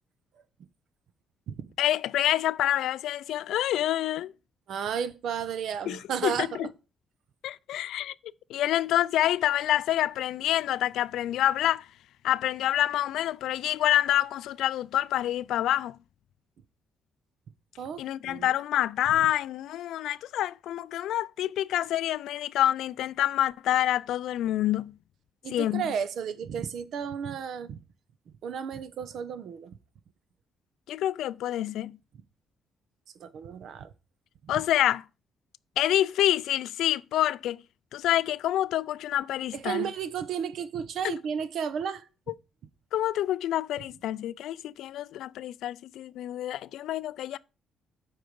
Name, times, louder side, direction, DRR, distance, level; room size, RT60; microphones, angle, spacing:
voice 1, 1.8-4.3 5.9-6.7 7.4-8.1 8.5-11.9 12.2-16.0 18.0-24.9 25.5-25.8 30.9-32.0 34.5-35.0 35.8-37.6 37.9-39.9 41.0-41.1 42.9-47.4, left 12 dB, 80° left, 0.3 m, -27 dB
voice 2, 4.7-6.7 17.8-18.6 25.4-27.8 28.4-29.8 33.2-33.9 39.5-42.1, right 7 dB, 70° right, 0.8 m, -33 dB
7.7 x 4.8 x 5.2 m
cardioid pair, 90°, 0 cm